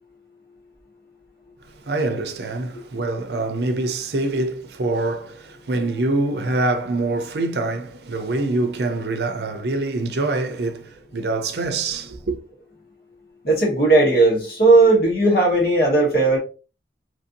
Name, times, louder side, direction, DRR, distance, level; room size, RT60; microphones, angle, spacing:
voice 1, 1.9-12.4, right 2 dB, 70° right, 0.6 m, -25 dB
voice 2, 13.4-16.4, right 2 dB, 60° left, 1.2 m, -16 dB
3.2 x 2.6 x 2.6 m
head